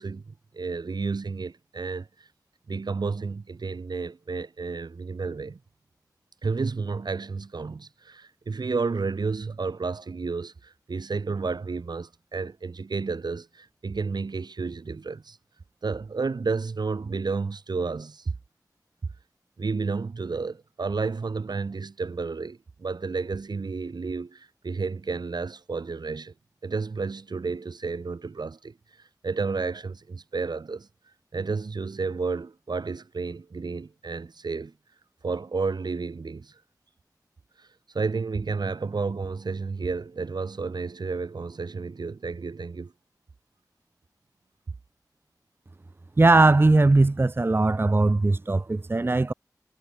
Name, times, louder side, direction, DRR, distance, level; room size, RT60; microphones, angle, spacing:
voice 1, 0.0-2.3 2.7-5.6 6.4-15.4 15.8-18.3 19.6-26.3 26.6-28.8 29.2-30.9 31.3-34.7 35.2-36.6 37.6-37.7 37.9-42.9, right 4 dB, 90° right, 2.0 m, -31 dB
voice 2, 46.2-49.3, right 2 dB, 35° right, 0.6 m, -19 dB
wide cardioid pair, 75°, 7 cm